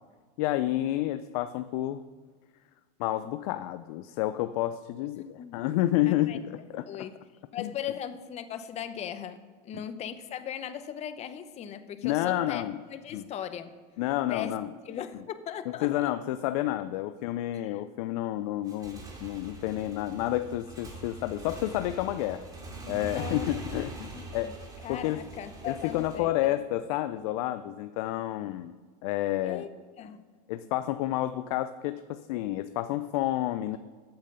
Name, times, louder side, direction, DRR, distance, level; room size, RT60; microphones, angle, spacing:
voice 1, 0.4-2.0 3.0-7.1 7.6-7.7 9.7-9.8 12.0-12.8 13.1-13.2 14.0-14.7 15.8-22.5 22.9-24.6 24.9-25.3 25.7-28.7 29.0-29.6 30.5-33.8, left 14 dB, 65° left, 12 dB, 0.5 m, -30 dB
voice 2, 5.2-5.5 6.0-6.4 6.9-7.1 7.5-12.6 12.9-13.7 14.3-14.6 14.8-15.9 17.5-17.8 23.1-23.8 24.1-24.5 24.8-26.6 29.4-29.7 30.0-30.2, left 9 dB, 30° left, 11 dB, 0.8 m, -38 dB
Motorcycle / Engine, 18.5-26.2, right 3 dB, 20° right, 2.4 m, -43 dB
8.8 x 7.6 x 6.8 m, 1.5 s
supercardioid pair, 120°, 21 cm